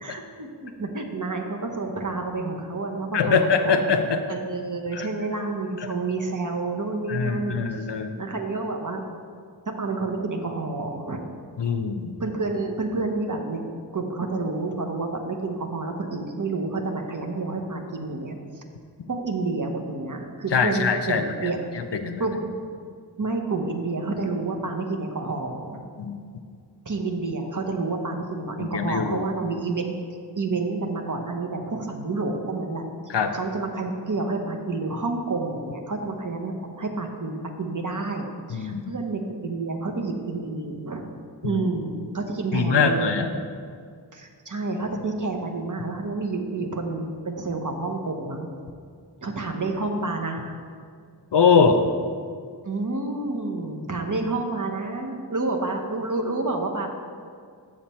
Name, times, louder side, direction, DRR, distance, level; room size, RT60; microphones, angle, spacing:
voice 1, 0.0-3.7 4.3-7.6 8.2-9.0 9.8-11.3 12.2-13.6 13.9-18.4 19.1-21.6 22.2-22.5 23.2-25.8 26.9-32.8 33.3-41.0 41.4-43.1 44.1-48.5 49.2-50.6 52.6-56.9, right 3 dB, 45° right, 3 dB, 0.9 m, -29 dB
voice 2, 3.1-4.2 4.9-5.1 5.8-5.9 7.1-8.2 11.6-12.1 20.5-22.2 26.0-26.2 28.6-29.3 33.1-33.4 38.5-38.9 41.4-41.6 42.5-43.3 51.3-51.8, left 5 dB, 80° left, 8 dB, 0.6 m, -23 dB
7.3 x 6.5 x 4.3 m, 2.1 s
wide cardioid pair, 55°, 42 cm